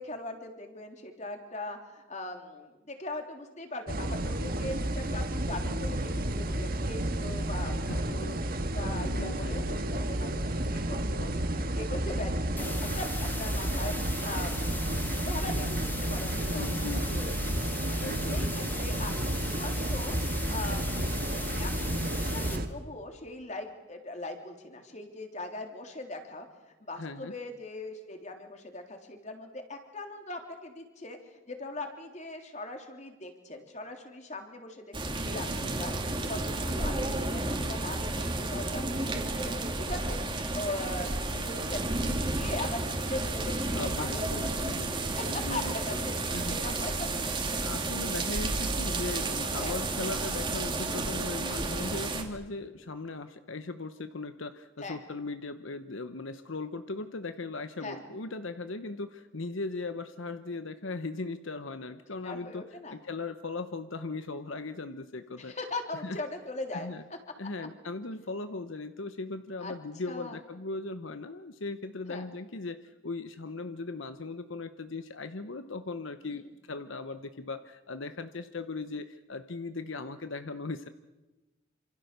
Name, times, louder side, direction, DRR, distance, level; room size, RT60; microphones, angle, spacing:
voice 1, 0.0-8.4 8.7-14.7 15.2-20.8 21.5-40.2 40.5-44.9 45.2-45.3 45.5-47.4 49.6-49.8 54.8-55.0 57.8-58.0 62.2-63.0 65.4-66.9 69.6-69.7 70.1-70.4 72.1-72.3 76.3-76.4, left 2 dB, 35° left, 4 dB, 3.4 m, -40 dB
sound 1, 3.9-22.7, right 1 dB, 45° right, 1.7 m, -31 dB
voice 2, 7.9-8.3 9.0-9.9 16.5-17.2 18.0-18.8 27.0-27.3 43.7-45.0 45.3-45.7 46.3-46.6 47.5-62.6 62.9-65.5 66.0-66.2 66.7-67.0 67.4-80.9, left 3 dB, 75° left, 10 dB, 1.0 m, -38 dB
sound 2, 12.6-22.6, left 2 dB, 10° left, 1.9 m, -39 dB
sound 3, 34.9-52.2, right 2 dB, 25° right, 2.6 m, -32 dB
28.0 x 26.5 x 6.8 m, 1.1 s
head